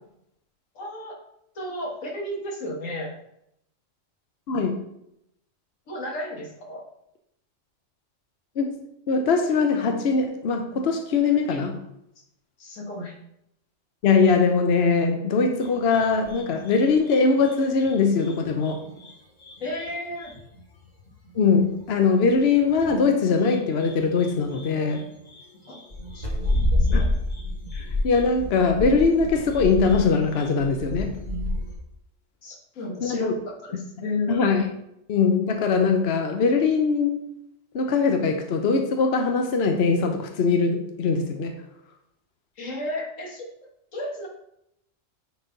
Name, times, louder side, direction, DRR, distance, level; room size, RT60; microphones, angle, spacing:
voice 1, 0.8-1.2 1.6-3.1 5.9-6.8 11.5-11.6 12.6-13.1 19.6-20.3 25.7-25.8 26.1-27.1 32.4-34.5 42.6-43.5 43.9-44.3, left 1 dB, 80° left, 0 dB, 1.9 m, -33 dB
voice 2, 4.5-4.8 8.6-8.8 9.1-11.8 14.0-18.8 21.3-25.0 26.9-27.1 27.7-31.2 33.0-33.3 34.3-34.6 35.1-37.2 37.7-41.5, left 4 dB, 60° left, 5 dB, 0.9 m, -21 dB
sound 1, 15.6-19.1 19.4-23.1 23.4-31.7, left 1 dB, 35° left, 1.5 m, -30 dB
9.8 x 4.2 x 3.9 m, 0.79 s
omnidirectional pair, 1.3 m